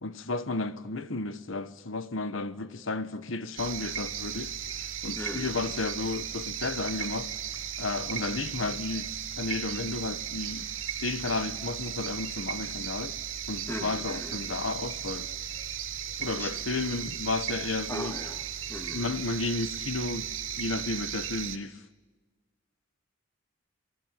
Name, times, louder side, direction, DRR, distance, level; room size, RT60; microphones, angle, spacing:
voice 1, 0.0-4.5 5.0-7.3 7.8-10.7 11.0-13.1 13.5-15.3 16.2-18.2 18.9-20.3 20.6-21.8, left 3 dB, 85° left, 1.2 m, -33 dB
sound 1, 3.6-21.6, right 9 dB, 85° right, 2.4 m, -36 dB
voice 2, 5.2-5.5 10.6-10.7 13.7-14.4 16.4-16.5 17.9-19.2, equal, 10° left, 2.5 m, -39 dB
28.0 x 21.0 x 9.1 m
head